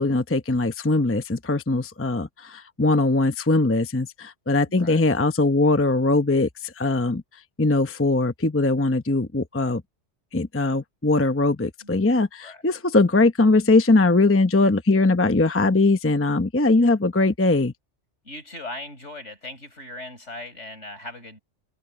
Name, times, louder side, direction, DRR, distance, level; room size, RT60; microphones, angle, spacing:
voice 1, 0.0-7.2 7.6-9.8 10.3-17.7, left 2 dB, 15° left, 0.8 m, -21 dB
voice 2, 4.7-5.1 11.8-11.9 12.4-12.6 18.3-21.4, left 2 dB, 70° left, 6.8 m, -39 dB
omnidirectional pair, 1.3 m